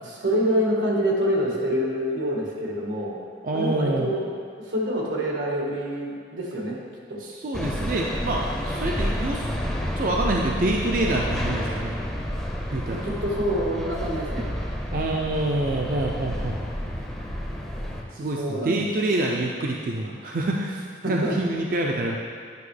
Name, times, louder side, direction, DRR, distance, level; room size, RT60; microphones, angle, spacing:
voice 1, 0.0-3.2 3.5-4.3 4.7-6.8 7.1-7.2 12.9-14.5 18.2-18.8 21.0-21.3, equal, 90° right, -2 dB, 1.5 m, -26 dB
voice 2, 3.4-4.2 7.2-9.5 9.9-12.0 12.7-13.1 14.9-16.6 18.1-22.2, right 2 dB, 45° right, -1 dB, 0.4 m, -26 dB
sound 1, 7.5-18.0, equal, 5° left, 0.6 m, -30 dB
9.3 x 5.7 x 3.3 m, 2.1 s
head